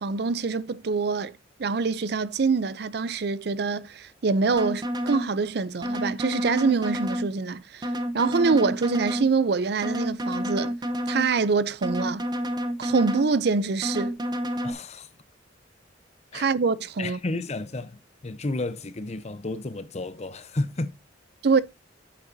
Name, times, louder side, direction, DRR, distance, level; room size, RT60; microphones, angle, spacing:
voice 1, 0.0-7.9 8.1-10.8 11.1-12.2 12.8-14.2 16.3-17.2 21.4-21.6, right 4 dB, 60° right, 0.5 m, -25 dB
sound 1, 4.5-5.3 5.8-7.3 7.8-9.3 9.8-11.3 11.8-13.3 13.8-14.7, equal, 20° right, 0.8 m, -29 dB
voice 2, 14.6-15.1 16.3-16.5 17.0-20.9, left 2 dB, 35° left, 0.7 m, -32 dB
8.6 x 7.1 x 2.7 m
head